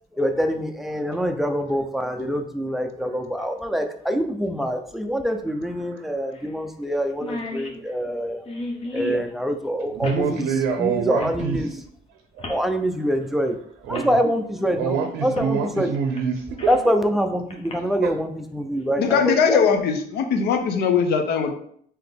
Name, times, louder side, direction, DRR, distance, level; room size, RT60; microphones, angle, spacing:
voice 1, 0.2-8.4 8.9-10.5 10.8-11.7 12.5-13.6 13.9-15.9 16.7-19.6, equal, ahead, 5 dB, 0.4 m, -25 dB
sound 1, 3.4-3.5 5.3-5.4 5.7-5.8 6.3-6.5 6.8-6.9 7.1-9.3 10.0-10.3 11.2-11.4 12.4-12.6 13.5-13.6 13.9-14.1 15.4-15.5 15.9-16.9 17.5-17.7, left 2 dB, 35° left, 0.9 m, -34 dB
voice 2, 9.9-11.8 12.4-12.5 13.9-14.2 14.8-16.7 18.0-18.1, right 6 dB, 80° right, 5 dB, 0.5 m, -26 dB
voice 3, 19.0-21.5, left 6 dB, 75° left, 6 dB, 0.6 m, -20 dB
3.9 x 2.8 x 3.4 m, 0.64 s
cardioid pair, 110°, 17 cm